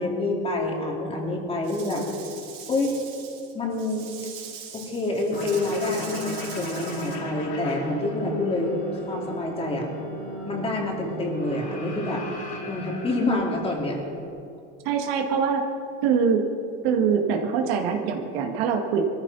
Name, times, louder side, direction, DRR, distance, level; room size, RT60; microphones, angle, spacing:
voice 1, 0.0-2.0 2.7-3.0 3.5-4.1 4.7-8.7 9.1-9.9 10.4-12.2 12.7-14.0, left 2 dB, 20° left, 0 dB, 2.6 m, -27 dB
Rattle / Rattle (instrument), 1.6-7.2, right 7 dB, 65° right, 3.9 m, -42 dB
sound 1, 5.3-14.3, equal, 40° left, 3.2 m, -36 dB
voice 2, 14.8-15.6 16.0-16.4 16.8-19.0, right 6 dB, 85° right, 3 dB, 2.0 m, -23 dB
21.0 x 14.5 x 4.1 m, 2.6 s
cardioid pair, 155°, 30 cm